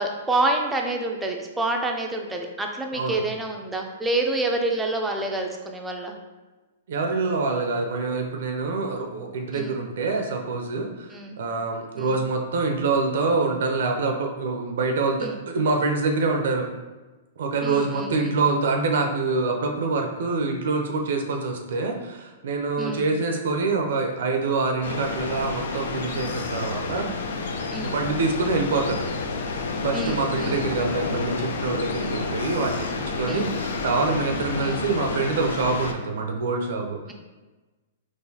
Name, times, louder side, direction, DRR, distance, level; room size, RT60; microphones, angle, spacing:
voice 1, 0.0-6.1 9.5-9.9 11.1-11.4 12.0-12.2 15.2-15.3 17.6-18.3 22.8-23.1 27.7-28.1 29.9-30.9 32.0-32.3 33.3-33.6 34.6-34.9, right 2 dB, 10° right, 2 dB, 0.4 m, -28 dB
voice 2, 6.9-11.1 11.4-16.7 17.4-27.1 27.8-29.0 29.8-37.1, right 3 dB, 70° right, 3 dB, 0.4 m, -25 dB
sound 1, 24.8-35.9, left 4 dB, 70° left, 0.4 m, -30 dB
3.8 x 2.5 x 2.7 m, 1.2 s
hypercardioid pair, 135°, 0 cm